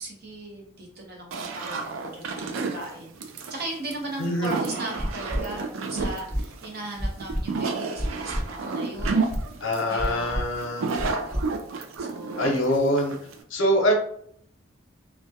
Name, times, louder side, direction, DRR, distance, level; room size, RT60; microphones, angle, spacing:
voice 1, 0.0-9.6 9.9-10.4 11.0-11.5 12.0-12.6, right 1 dB, 50° right, -1 dB, 0.7 m, -38 dB
sound 1, 1.3-13.4, right 4 dB, 80° right, 0.3 m, -31 dB
voice 2, 4.2-4.5 9.6-10.8 12.4-13.1 13.5-13.9, equal, 75° left, 1 dB, 0.6 m, -24 dB
sound 2, 5.0-5.4 6.0-6.4 7.0-7.4 8.0-8.4 9.0-9.4 10.0-10.4 11.0-11.4 12.0-12.1, equal, 30° right, 1.1 m, -28 dB
2.2 x 2.1 x 2.7 m, 0.64 s
head